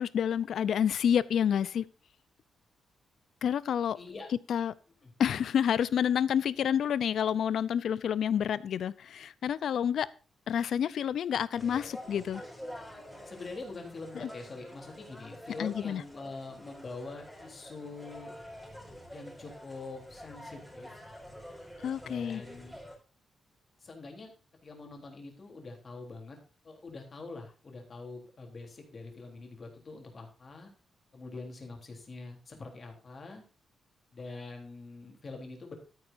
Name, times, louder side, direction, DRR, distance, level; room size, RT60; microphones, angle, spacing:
voice 1, 0.0-1.8 3.4-4.0 4.5-4.7 5.2-10.1 10.5-12.4 15.6-16.0 21.8-22.4, left 8 dB, 70° left, 19 dB, 0.6 m, -29 dB
voice 2, 3.9-4.3 5.0-5.1 6.6-6.7 13.3-18.3 19.1-21.0 22.0-22.7 23.8-24.3 24.6-26.4 26.6-30.7 31.1-33.4 34.1-35.8, left 3 dB, 35° left, 2 dB, 3.5 m, -44 dB
sound 1, 11.5-23.0, equal, ahead, 4.3 m, -47 dB
13.0 x 9.7 x 2.7 m, 0.37 s
wide cardioid pair, 155°, 0 cm